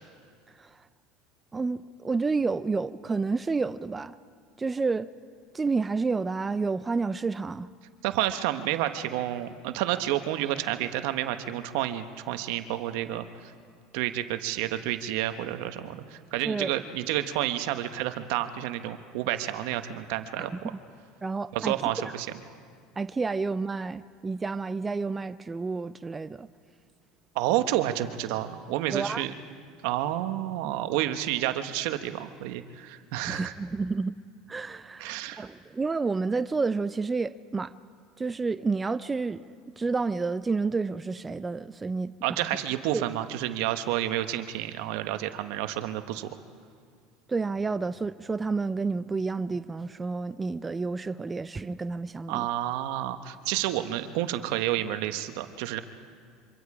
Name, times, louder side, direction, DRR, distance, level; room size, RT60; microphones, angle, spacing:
voice 1, 1.5-4.1 4.6-5.1 5.5-7.7 16.4-16.7 20.4-20.5 21.2-21.8 22.0-22.1 23.0-26.5 28.9-29.3 33.3-34.2 34.5-37.7 38.2-42.4 42.9-43.0 47.3-52.5, right 4 dB, 20° right, 13 dB, 0.5 m, -30 dB
voice 2, 8.0-13.5 13.9-20.5 21.5-22.3 27.3-29.3 29.8-33.5 35.0-35.5 42.2-46.3 52.3-55.8, right 13 dB, 75° right, 9 dB, 1.2 m, -30 dB
26.0 x 25.0 x 5.0 m, 2.1 s
supercardioid pair, 105°, 0 cm